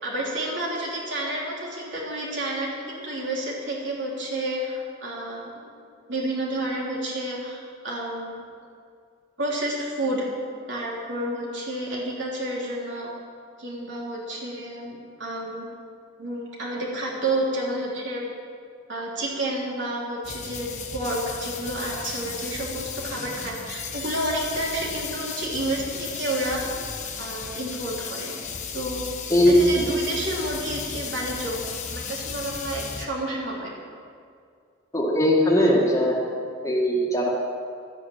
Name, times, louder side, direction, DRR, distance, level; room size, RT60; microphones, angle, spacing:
voice 1, 0.0-5.7 6.1-8.3 9.4-10.3 10.7-13.1 13.6-15.7 16.2-18.2 18.9-26.6 27.2-28.3 28.7-29.0 29.5-33.7, right 1 dB, 60° right, -4 dB, 3.5 m, -30 dB
sound 1, 20.2-33.1, left 6 dB, 35° left, 1.3 m, -35 dB
voice 2, 34.9-36.2 36.6-37.3, left 1 dB, 15° left, -2 dB, 1.8 m, -19 dB
12.0 x 9.8 x 8.9 m, 2.3 s
head